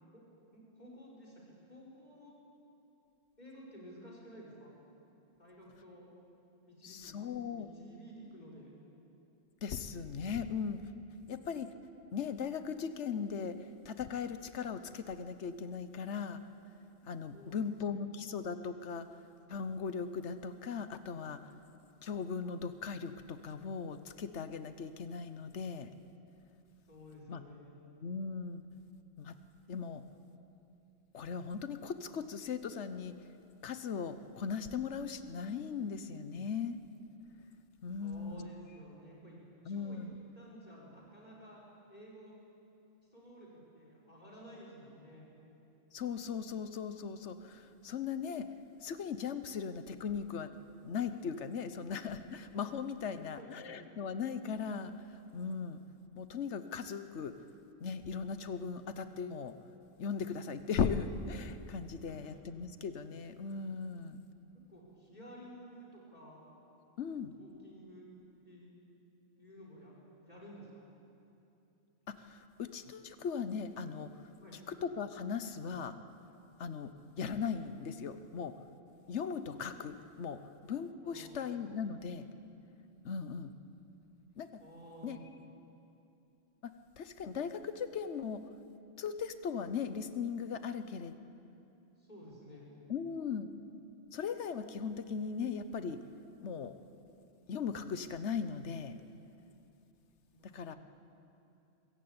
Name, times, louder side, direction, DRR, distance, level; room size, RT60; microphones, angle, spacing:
voice 1, 0.5-2.4 3.4-4.7 5.4-6.1 6.6-8.7 17.3-18.0 26.9-27.8 38.0-39.4 39.6-40.0 40.3-41.6 41.9-42.3 43.1-45.3 53.2-53.8 62.0-62.3 64.7-66.4 67.1-68.0 68.4-68.7 69.3-69.9 70.2-70.8 74.4-74.6 81.0-81.6 84.6-85.2 92.0-92.7 100.3-100.8, equal, 35° left, -4 dB, 5.1 m, -53 dB
voice 2, 6.8-7.7 9.6-10.8 11.3-11.7 12.1-16.4 17.0-19.1 19.5-21.4 22.0-25.9 27.3-27.4 28.0-28.6 29.2-29.4 29.7-30.0 31.1-33.1 33.6-36.8 37.8-38.5 39.6-40.2 45.9-48.5 48.8-50.6 50.8-55.8 56.1-57.3 57.8-59.5 60.0-64.2 67.0-67.3 72.1-74.1 74.7-75.9 76.6-76.9 77.2-78.5 79.1-82.3 83.0-83.5 84.4-84.5 85.0-85.2 86.6-88.4 89.0-91.2 92.9-93.5 94.1-96.0 96.4-96.7 97.5-99.0 100.5-100.7, left 6 dB, 70° left, 11 dB, 1.2 m, -38 dB
23.0 x 14.5 x 8.7 m, 2.8 s
omnidirectional pair, 1.3 m